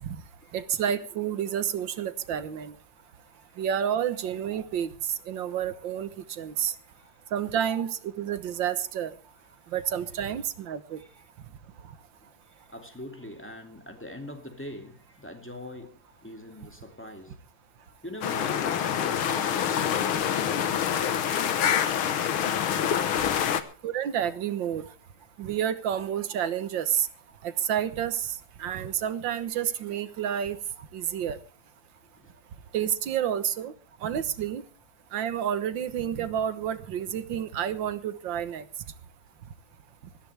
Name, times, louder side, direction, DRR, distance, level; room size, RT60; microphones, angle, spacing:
voice 1, 0.5-2.7 3.6-4.9 5.3-6.8 7.3-9.1 9.7-11.0 23.8-24.9 25.4-27.1 27.4-30.6 30.9-31.4 32.7-33.7 34.0-34.6 35.1-38.7, right 9 dB, 65° right, 1.7 m, -29 dB
voice 2, 3.0-3.6 6.2-7.3 9.6-9.7 11.0-11.2 12.4-17.4 17.8-22.3 23.1-23.4 25.3-25.4 32.2-32.3 32.6-32.7, left 1 dB, 5° left, 2.3 m, -44 dB
sound 1, 18.2-23.6, left 9 dB, 75° left, 2.0 m, -26 dB
20.5 x 14.5 x 3.4 m
omnidirectional pair, 2.3 m